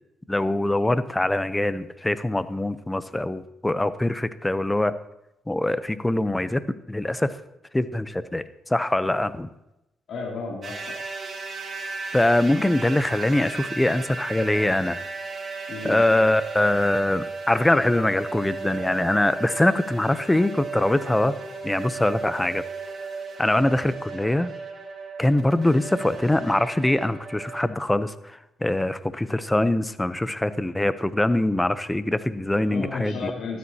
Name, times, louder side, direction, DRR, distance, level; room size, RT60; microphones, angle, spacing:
voice 1, 0.3-4.9 5.5-6.6 6.9-7.3 7.7-9.5 12.1-15.0 15.8-21.3 21.6-22.6 23.4-24.5 25.2-33.3, left 1 dB, 10° left, 13 dB, 0.6 m, -23 dB
voice 2, 10.1-10.7 15.7-16.0 32.6-33.6, left 4 dB, 60° left, -5 dB, 2.7 m, -32 dB
sound 1, 10.6-27.7, right 4 dB, 45° right, 3.3 m, -35 dB
14.5 x 12.5 x 2.8 m, 0.90 s
cardioid pair, 90°, 0 cm